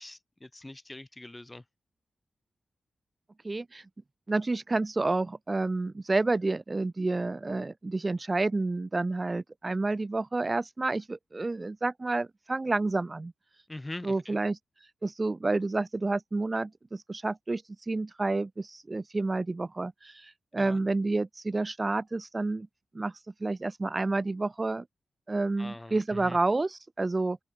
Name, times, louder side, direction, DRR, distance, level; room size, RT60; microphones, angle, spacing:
voice 1, 0.0-1.6 13.7-14.4 20.6-20.8 25.6-26.4, left 1 dB, 15° left, 1.9 m, -43 dB
voice 2, 3.4-3.8 4.3-13.3 14.0-14.6 15.0-22.7 22.9-23.1 23.4-24.8 25.3-27.4, right 3 dB, 25° right, 0.4 m, -29 dB
wide cardioid pair, 110°, 0 cm